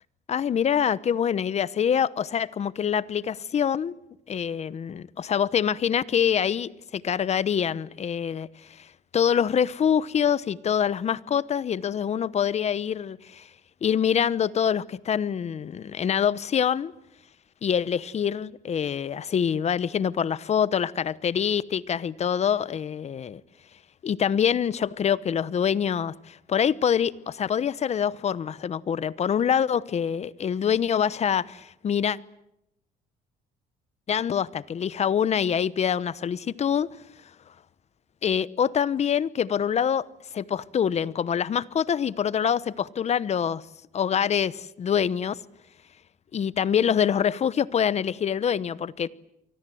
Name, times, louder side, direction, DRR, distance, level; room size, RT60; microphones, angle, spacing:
voice 1, 0.3-3.9 4.3-13.5 13.8-16.9 17.6-23.4 24.0-32.2 34.1-36.9 38.2-40.1 40.3-43.7 43.9-45.4 46.3-49.1, left 8 dB, 40° left, 1.0 m, -25 dB
29.5 x 24.5 x 7.8 m
cardioid pair, 110°, 17 cm